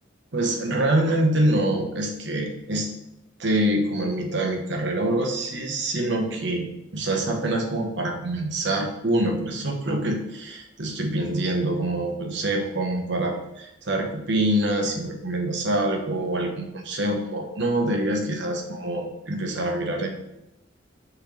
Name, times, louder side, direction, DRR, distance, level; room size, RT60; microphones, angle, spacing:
voice 1, 0.3-2.9 3.4-6.7 6.9-20.1, right 1 dB, 65° right, 2 dB, 1.2 m, -25 dB
6.3 x 6.1 x 3.3 m, 0.87 s
head